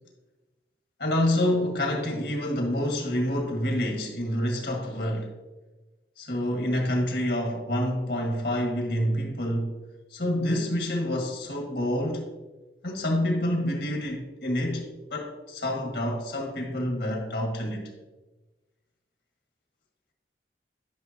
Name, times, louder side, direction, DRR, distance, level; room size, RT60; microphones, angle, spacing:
voice 1, 1.0-5.3 6.2-9.7 10.1-12.3 12.8-14.8 15.1-17.9, left 1 dB, 85° left, 1.7 m, -27 dB
11.5 x 5.9 x 2.8 m
head